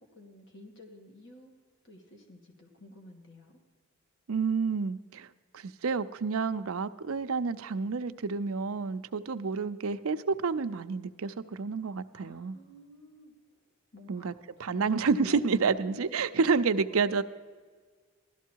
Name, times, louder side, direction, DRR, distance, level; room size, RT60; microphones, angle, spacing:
voice 1, 0.1-1.5 1.8-3.6 12.1-13.3 13.9-16.3 16.9-17.2, left 1 dB, 60° left, 2 dB, 2.4 m, -52 dB
voice 2, 4.3-5.3 5.5-12.6 14.1-14.3 14.6-17.2, right 5 dB, 80° right, 10 dB, 0.6 m, -29 dB
16.0 x 12.5 x 4.6 m, 1.5 s
head